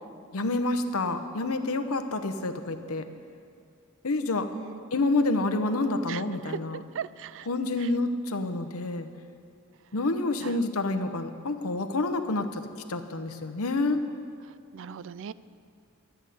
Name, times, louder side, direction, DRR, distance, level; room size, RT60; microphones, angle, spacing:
voice 1, 0.3-3.1 4.0-4.5 4.9-6.8 7.5-9.1 9.9-14.0, left 2 dB, 80° left, 8 dB, 0.9 m, -28 dB
voice 2, 6.1-7.5 7.8-7.9 10.4-10.6 14.7-15.3, right 7 dB, 60° right, 17 dB, 0.4 m, -39 dB
13.5 x 8.0 x 9.3 m, 2.5 s
head